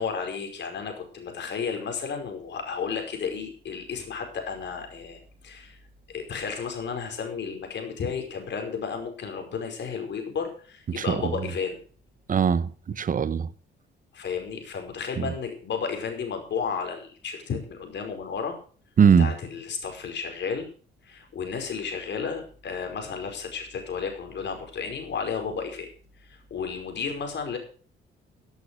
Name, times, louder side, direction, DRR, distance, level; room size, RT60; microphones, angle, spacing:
voice 1, 0.0-5.8 6.1-11.8 14.1-18.6 19.2-20.7 21.0-25.9 26.2-27.6, left 6 dB, 65° left, 5.1 m, -33 dB
voice 2, 10.9-11.3 12.3-13.5 15.2-15.3 19.0-19.3, right 7 dB, 45° right, 1.1 m, -21 dB
16.0 x 8.4 x 6.4 m
cardioid pair, 90°, 20 cm